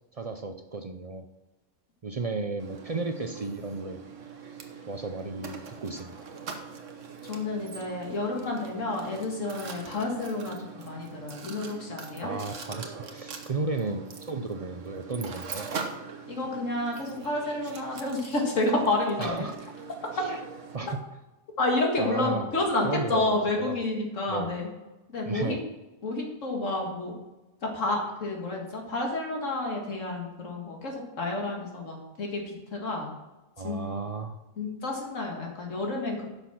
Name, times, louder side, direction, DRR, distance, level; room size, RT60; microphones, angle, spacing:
voice 1, 0.1-1.3 2.0-4.0 4.9-6.3 12.2-15.7 19.2-19.7 20.2-20.4 20.7-21.0 22.0-22.5 22.8-23.8 24.3-24.5 25.2-25.6 33.6-34.4, right 3 dB, 40° right, 7 dB, 0.5 m, -34 dB
Mechanisms, 2.6-20.8, right 5 dB, 75° right, 1.4 m, -42 dB
voice 2, 7.2-12.3 16.3-19.5 21.6-24.7 25.1-25.6 26.0-27.2 27.6-33.1 33.6-33.8 34.6-36.3, left 2 dB, 80° left, 0 dB, 2.3 m, -30 dB
10.5 x 6.2 x 5.9 m, 1.1 s
omnidirectional pair, 1.3 m